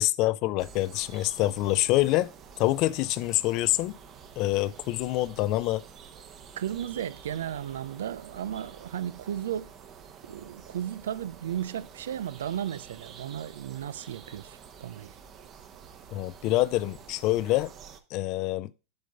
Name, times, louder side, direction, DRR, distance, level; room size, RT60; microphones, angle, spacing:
voice 1, 0.0-2.3 2.6-3.9 4.4-5.8 16.1-17.7 18.1-18.7, left 16 dB, 55° left, 0.5 m, -26 dB
sound 1, 0.6-18.0, right 7 dB, 40° right, 1.1 m, -49 dB
voice 2, 6.6-9.7 10.2-15.2, right 10 dB, 85° right, 0.4 m, -35 dB
10.5 x 3.9 x 5.2 m
hypercardioid pair, 100°, 0 cm